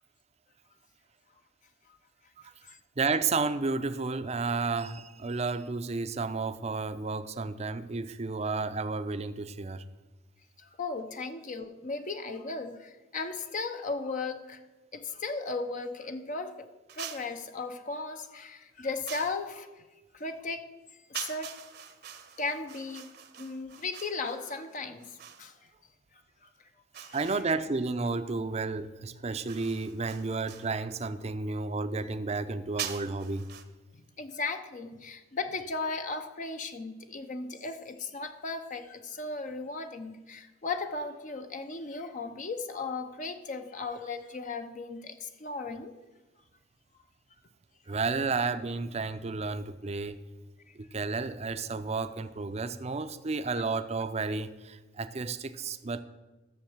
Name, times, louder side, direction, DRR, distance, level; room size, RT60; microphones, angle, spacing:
voice 1, 2.6-9.8 27.1-33.5 47.9-50.2 50.8-56.0, right 4 dB, 35° right, 10 dB, 0.6 m, -32 dB
voice 2, 10.6-14.6 14.9-16.7 17.0-19.8 20.1-20.7 21.1-21.5 22.4-25.5 26.4-26.5 26.9-27.3 33.9-45.9 47.9-48.0, left 3 dB, 40° left, 7 dB, 0.7 m, -36 dB
sound 1, 16.9-17.4 19.1-19.5 21.1-25.5 26.9-27.8 29.5-30.8 32.8-33.6, right 9 dB, 55° right, 0.9 m, -43 dB
12.0 x 7.0 x 7.2 m, 1.2 s
head